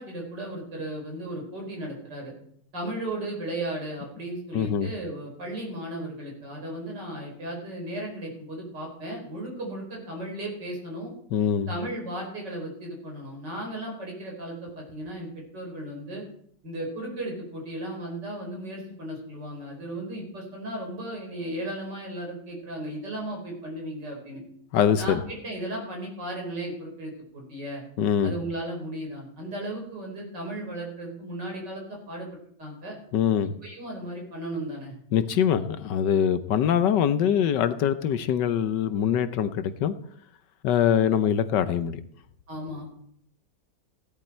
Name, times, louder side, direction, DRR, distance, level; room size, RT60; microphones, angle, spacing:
voice 1, 0.0-2.3 2.7-11.1 11.7-16.2 16.6-24.4 25.0-27.8 28.2-32.3 32.6-32.9 33.6-34.9 42.5-43.0, right 1 dB, 70° right, 0 dB, 5.5 m, -35 dB
voice 2, 4.5-4.9 11.3-11.7 24.7-25.2 28.0-28.4 33.1-33.5 35.1-39.9 40.6-42.0, left 9 dB, 75° left, 12 dB, 1.4 m, -23 dB
16.5 x 10.5 x 4.4 m, 0.64 s
omnidirectional pair, 2.0 m